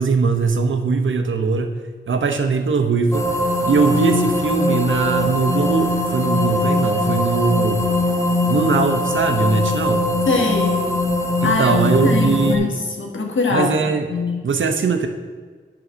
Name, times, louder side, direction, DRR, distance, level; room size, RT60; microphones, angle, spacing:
voice 1, 0.0-1.7 2.1-3.3 3.7-8.0 8.5-10.1 11.4-12.7 13.5-14.1 14.4-15.1, right 4 dB, 85° right, 6 dB, 0.8 m, -20 dB
sound 1, 3.1-12.6, left 1 dB, 15° left, 1.0 m, -21 dB
voice 2, 10.3-10.8 11.4-14.5, left 3 dB, 85° left, 1 dB, 1.4 m, -22 dB
9.4 x 3.8 x 6.1 m, 1.5 s
wide cardioid pair, 70°, 20 cm